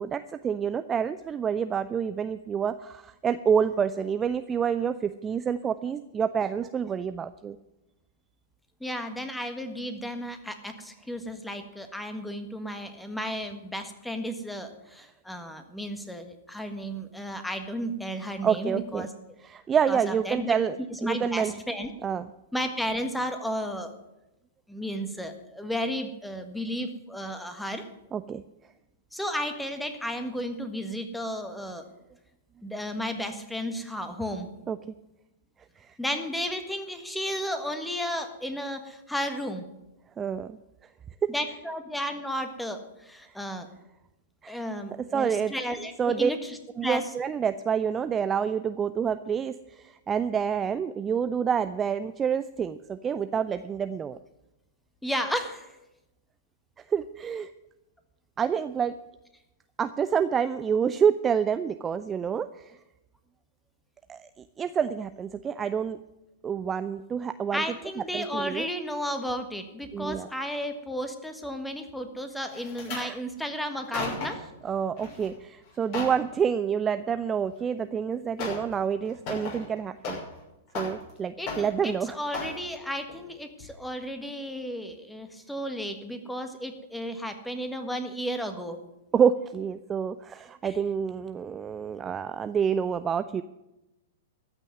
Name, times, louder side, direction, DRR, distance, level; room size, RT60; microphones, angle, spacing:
voice 1, 0.0-7.6 18.4-19.1 19.4-20.8 21.0-21.5 22.0-22.3 28.1-28.4 34.7-34.8 40.2-40.6 41.2-41.3 44.4-44.6 45.1-45.5 46.0-46.3 46.8-54.2 56.9-57.5 58.4-58.9 59.8-62.7 64.1-64.2 64.6-66.0 66.4-67.6 68.1-68.7 69.9-70.3 72.9-73.2 74.6-80.2 80.7-82.1 89.1-93.4, right 7 dB, 20° right, 11 dB, 0.4 m, -28 dB
voice 2, 8.8-19.1 19.9-20.6 20.9-21.9 22.5-23.9 24.7-27.8 29.1-31.8 32.6-34.5 36.0-39.6 41.3-43.7 44.5-47.1 55.0-55.7 67.5-74.4 81.4-88.8 90.6-90.8, equal, 5° left, 7 dB, 1.6 m, -33 dB
sound 1, 72.5-73.1 73.7-74.5 75.0-75.3 75.6-76.2 77.6-77.7 78.4-78.7 79.0-80.4 80.7-81.2 81.5-81.9 82.3-82.6 83.1-83.3 83.6-83.7, left 3 dB, 45° left, 6.4 m, -35 dB
14.0 x 6.3 x 9.2 m, 0.95 s
hypercardioid pair, 110°, 0 cm